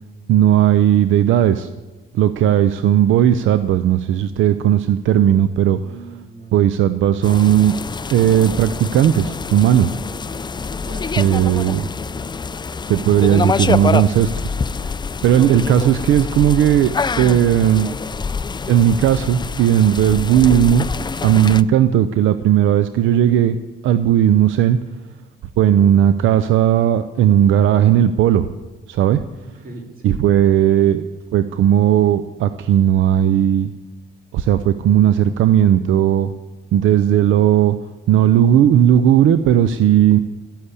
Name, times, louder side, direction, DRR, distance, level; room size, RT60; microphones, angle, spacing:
voice 1, 0.3-1.7 2.1-5.8 6.5-7.7 8.1-9.9 11.2-11.9 12.9-14.9 15.2-17.9 18.7-20.9 21.2-23.6 23.8-24.8 25.6-28.5 28.9-29.2 30.0-31.0 31.3-33.7 34.3-36.3 36.7-37.8 38.1-40.2, right 10 dB, 80° right, 12 dB, 0.6 m, -15 dB
voice 2, 5.8-6.7 10.8-11.1 29.4-30.2, right 3 dB, 45° right, 1 dB, 3.9 m, -39 dB
sound 1, 7.2-21.6, left 5 dB, 20° left, 0.4 m, -26 dB
13.0 x 10.5 x 8.3 m, 1.2 s
cardioid pair, 90°, 20 cm